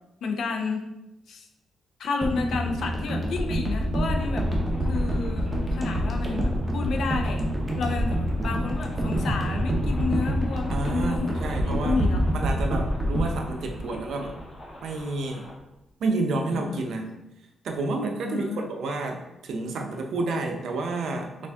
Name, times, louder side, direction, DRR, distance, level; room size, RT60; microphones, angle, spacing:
voice 1, 0.2-0.8 1.3-1.5 2.0-4.5 4.8-7.4 7.8-12.2 16.5-17.1 18.2-18.7, left 4 dB, 70° left, 4 dB, 0.5 m, -31 dB
sound 1, 2.2-14.5 14.8-15.0, equal, 15° right, 0.8 m, -27 dB
sound 2, 4.2-15.5, equal, 30° left, 0.9 m, -46 dB
voice 2, 10.7-12.0 12.3-14.4 14.8-15.5 16.0-17.1 17.6-21.5, right 3 dB, 75° right, 3 dB, 0.5 m, -30 dB
3.4 x 2.4 x 3.4 m, 0.92 s
cardioid pair, 90°, 0 cm